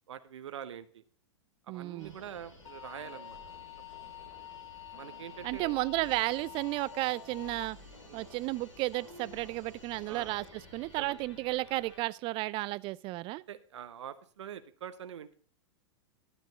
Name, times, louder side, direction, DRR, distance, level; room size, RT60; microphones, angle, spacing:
voice 1, 0.1-1.0 1.6-3.4 5.0-6.1 8.1-8.3 10.1-10.3 11.0-11.2 13.5-15.4, right 9 dB, 70° right, 0.8 m, -45 dB
voice 2, 1.7-2.1 5.4-7.8 8.1-10.4 10.7-13.4, right 19 dB, 35° right, 0.4 m, -33 dB
sound 1, 2.0-12.0, left 1 dB, 90° left, 3.0 m, -52 dB
sound 2, 2.7-7.7, left 13 dB, 65° left, 1.0 m, -48 dB
12.0 x 9.2 x 3.9 m
figure-of-eight pair, 100°, 16 cm